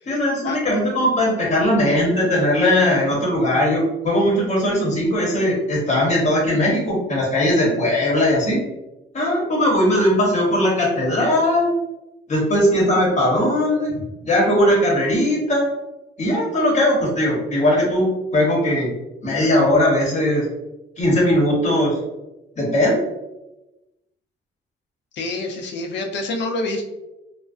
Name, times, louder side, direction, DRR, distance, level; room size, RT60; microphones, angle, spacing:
voice 1, 0.1-8.6 9.1-11.7 12.3-14.0 14.2-15.7 16.2-18.9 19.2-20.5 21.0-22.0 22.6-23.0, left 1 dB, 35° left, -2 dB, 0.9 m, -19 dB
voice 2, 25.1-26.8, left 2 dB, 65° left, 3 dB, 0.5 m, -27 dB
2.4 x 2.1 x 2.3 m, 0.97 s
cardioid pair, 90°, 20 cm